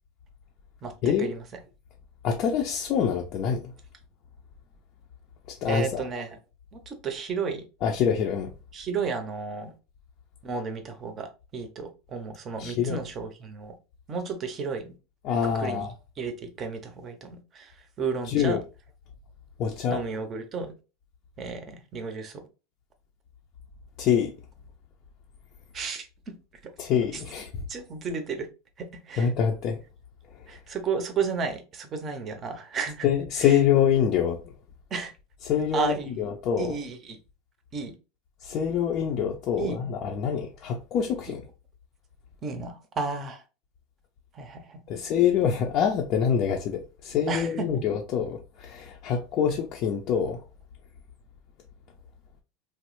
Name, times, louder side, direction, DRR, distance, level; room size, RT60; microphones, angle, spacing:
voice 1, 0.8-1.4 5.7-6.4 6.7-7.6 8.7-9.7 10.4-13.7 14.1-14.9 15.4-15.9 16.2-17.7 18.0-18.6 19.9-20.7 21.4-22.4 25.7-26.1 27.1-27.2 27.7-28.5 28.8-29.3 30.5-33.1 33.4-33.6 34.9-35.1 35.7-36.3 36.6-37.2 37.7-37.9 39.6-39.8 41.3-41.4 42.4-43.4 44.3-45.0 47.3-47.8, right 5 dB, 30° right, 0.6 m, -33 dB
voice 2, 2.2-3.6 5.6-6.0 7.8-8.5 12.6-13.0 15.2-15.9 18.3-18.6 19.6-20.0 24.0-24.3 26.8-27.5 29.2-29.8 33.0-34.4 35.5-36.7 38.4-41.4 44.9-50.4, left 8 dB, 45° left, 0.4 m, -25 dB
3.1 x 2.0 x 3.0 m
supercardioid pair, 130°, 0 cm